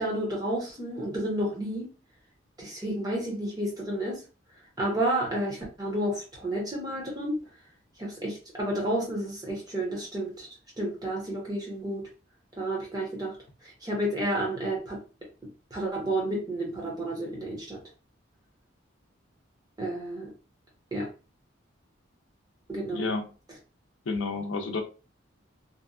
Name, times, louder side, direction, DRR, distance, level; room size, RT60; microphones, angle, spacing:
voice 1, 0.0-1.9 2.6-4.2 4.8-7.4 8.0-10.5 10.8-12.0 12.6-13.3 13.6-15.0 15.7-17.8 19.8-20.3 20.9-21.1 22.7-23.1, right 1 dB, 20° right, -2 dB, 0.9 m, -31 dB
voice 2, 22.9-23.3 24.1-24.8, left 3 dB, 75° left, 5 dB, 0.5 m, -30 dB
2.7 x 2.3 x 2.4 m, 0.33 s
head